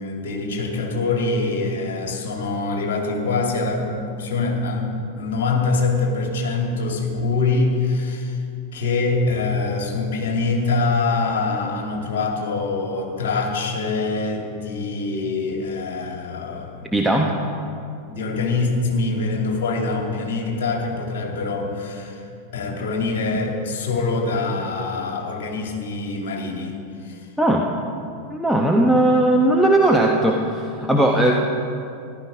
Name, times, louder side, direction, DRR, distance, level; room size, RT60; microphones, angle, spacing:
voice 1, 0.0-8.4 8.7-16.9 18.1-22.2 22.5-27.3, left 3 dB, 55° left, 1 dB, 2.4 m, -24 dB
voice 2, 16.9-17.3 27.4-27.7 28.3-31.4, right 1 dB, ahead, -1 dB, 1.0 m, -18 dB
14.5 x 11.5 x 5.0 m, 2.6 s
figure-of-eight pair, 90°, 0 cm